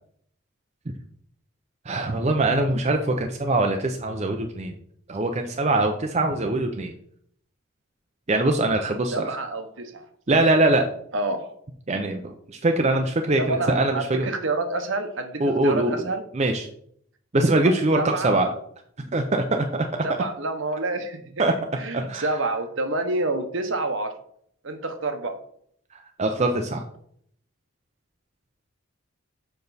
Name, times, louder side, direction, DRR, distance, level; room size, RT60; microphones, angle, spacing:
voice 1, 1.9-4.8 5.1-6.9 8.3-9.3 10.3-10.9 11.9-14.3 15.4-15.9 16.3-16.7 17.3-18.5 19.1-19.9 21.4-21.5 21.9-22.3 26.2-26.8, right 2 dB, 30° right, 4 dB, 0.5 m, -22 dB
voice 2, 9.0-10.0 11.1-11.5 13.4-16.2 17.9-18.5 20.0-21.4 21.8-24.1 24.6-25.4, right 2 dB, 60° right, 7 dB, 0.9 m, -28 dB
6.8 x 5.3 x 4.0 m, 0.65 s
head